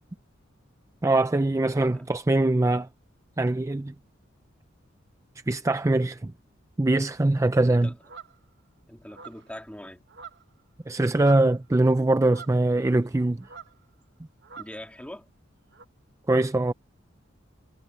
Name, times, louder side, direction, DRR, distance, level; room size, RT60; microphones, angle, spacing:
voice 1, 1.0-2.9 3.4-3.9 5.5-6.3 6.8-7.9 10.9-13.5 16.3-16.7, right 2 dB, 15° right, 0.4 m, -22 dB
voice 2, 1.9-2.5 7.7-8.0 8.9-10.0 14.6-15.3, left 1 dB, 5° left, 2.3 m, -43 dB
sound 1, 8.0-8.4 9.1-9.6 10.1-10.6 10.9-11.6 12.2-13.1 13.4-13.8 14.4-14.8 15.7-15.8, right 6 dB, 60° right, 1.1 m, -45 dB
head